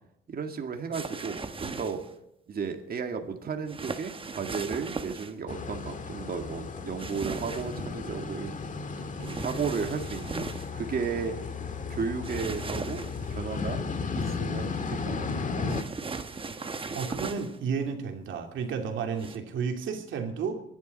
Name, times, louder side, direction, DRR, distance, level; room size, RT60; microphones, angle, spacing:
voice 1, 0.3-2.0 2.5-8.6 9.2-10.5 10.7-11.4 11.9-13.0 13.3-13.8 14.2-15.9, right 5 dB, 50° right, 4 dB, 2.0 m, -34 dB
sound 1, 0.9-2.1 3.7-5.3 7.0-7.8 9.2-10.7 12.2-13.3 15.7-17.6 19.2-19.4, right 4 dB, 25° right, 1.2 m, -37 dB
sound 2, 5.5-15.8, left 4 dB, 40° left, 1.6 m, -35 dB
voice 2, 16.9-20.6, right 6 dB, 75° right, 4 dB, 2.6 m, -32 dB
24.0 x 11.0 x 4.2 m, 0.80 s
cardioid pair, 90°, 20 cm